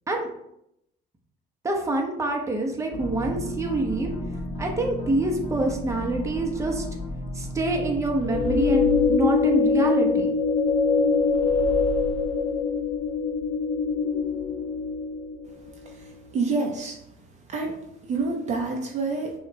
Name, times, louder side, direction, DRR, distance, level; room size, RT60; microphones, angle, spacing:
voice 1, 1.6-4.1 4.6-6.8 7.3-10.3, right 2 dB, 15° right, 1 dB, 0.9 m, -26 dB
sound 1, 2.9-8.4, left 1 dB, 40° left, 0.9 m, -34 dB
sound 2, 8.2-15.5, left 4 dB, 85° left, 0.6 m, -23 dB
voice 2, 16.3-17.0 17.5-17.7 18.1-19.3, right 3 dB, 45° right, 1 dB, 0.7 m, -27 dB
6.2 x 2.4 x 3.1 m, 0.78 s
cardioid pair, 110°, 17 cm